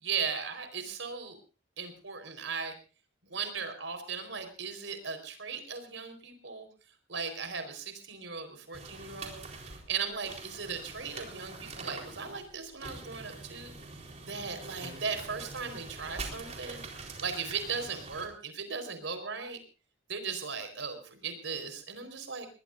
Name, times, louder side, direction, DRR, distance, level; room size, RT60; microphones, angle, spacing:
voice 1, 0.0-1.4 1.8-2.7 3.2-6.7 7.1-13.7 14.2-16.8 17.2-19.6 20.1-22.5, right 5 dB, 80° right, 8 dB, 4.4 m, -37 dB
sound 1, 8.7-18.3, right 3 dB, 35° right, 4.0 m, -44 dB
21.0 x 20.5 x 2.6 m, 0.35 s
head